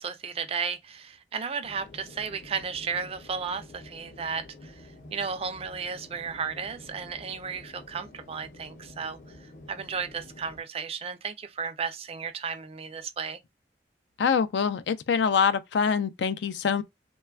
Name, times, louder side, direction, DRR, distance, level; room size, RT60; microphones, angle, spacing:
voice 1, 0.0-9.4 9.7-13.4, right 6 dB, 35° right, 0.4 m, -34 dB
sound 1, 1.6-10.6, left 2 dB, 45° left, 0.7 m, -49 dB
voice 2, 14.2-16.8, left 6 dB, 80° left, 0.4 m, -25 dB
3.1 x 2.2 x 2.2 m
head